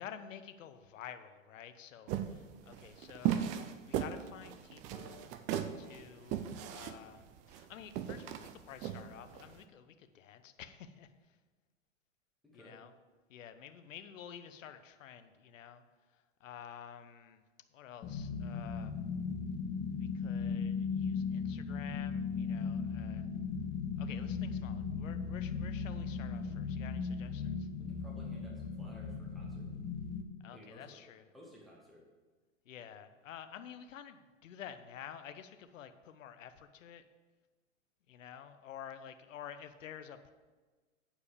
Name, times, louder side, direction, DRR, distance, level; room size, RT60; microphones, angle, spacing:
voice 1, 0.0-3.6 3.9-5.4 5.7-11.4 12.5-12.9 13.3-15.8 16.1-17.4 17.7-18.9 20.0-23.3 24.0-27.7 30.4-31.2 32.6-37.0 38.1-40.3, left 9 dB, 70° left, 10 dB, 0.9 m, -50 dB
sound 1, 2.1-9.5, right 10 dB, 20° right, 0.3 m, -37 dB
voice 2, 12.4-12.8 27.8-29.7 30.5-31.0 31.3-32.0, equal, ahead, -4 dB, 2.1 m, -56 dB
sound 2, 18.0-30.2, left 5 dB, 25° left, 0.7 m, -37 dB
9.0 x 4.8 x 6.8 m, 1.3 s
hypercardioid pair, 115°, 39 cm